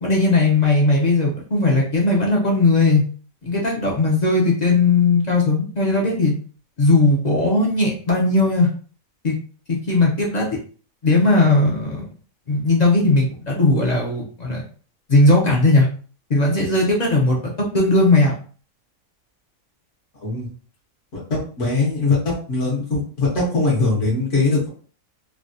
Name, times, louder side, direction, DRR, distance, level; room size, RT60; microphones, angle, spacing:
voice 1, 0.0-3.0 3.4-6.3 6.8-8.7 9.2-9.4 9.7-10.5 11.0-12.1 12.5-14.6 15.1-15.9 16.3-18.3, left 2 dB, 45° left, -2 dB, 0.5 m, -18 dB
voice 2, 21.3-24.7, left 3 dB, 60° left, -4 dB, 1.3 m, -21 dB
3.3 x 2.2 x 2.5 m, 0.42 s
omnidirectional pair, 1.5 m